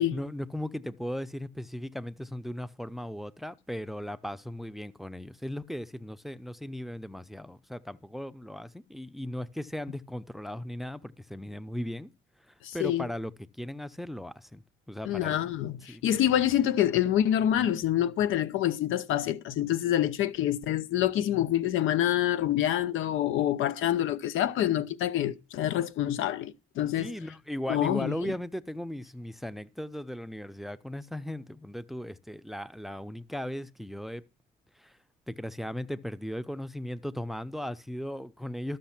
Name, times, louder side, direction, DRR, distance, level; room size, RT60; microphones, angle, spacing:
voice 1, 0.0-12.1 12.5-15.5 15.9-16.0 27.0-34.2 34.8-35.0 35.3-38.8, left 1 dB, ahead, 0.6 m, -37 dB
voice 2, 12.6-13.0 15.0-27.1 27.7-28.1, left 11 dB, 85° left, 0.7 m, -27 dB
13.5 x 6.3 x 5.8 m
cardioid pair, 90°, 20 cm